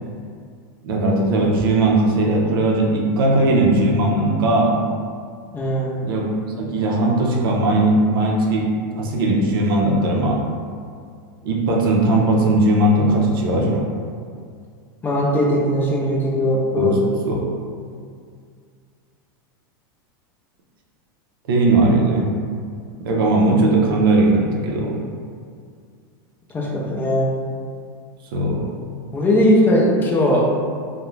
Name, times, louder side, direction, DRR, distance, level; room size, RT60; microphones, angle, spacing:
voice 1, 0.8-4.8 6.0-6.3 6.6-10.5 11.4-13.9 16.8-17.0 17.3-17.4 21.5-22.3 23.0-25.0 28.3-28.8, right 2 dB, 80° right, -1 dB, 0.5 m, -18 dB
voice 2, 5.5-5.9 15.0-17.0 26.5-27.3 29.1-30.5, equal, 15° left, -3 dB, 0.4 m, -19 dB
2.4 x 2.1 x 3.1 m, 2.2 s
supercardioid pair, 135°, 12 cm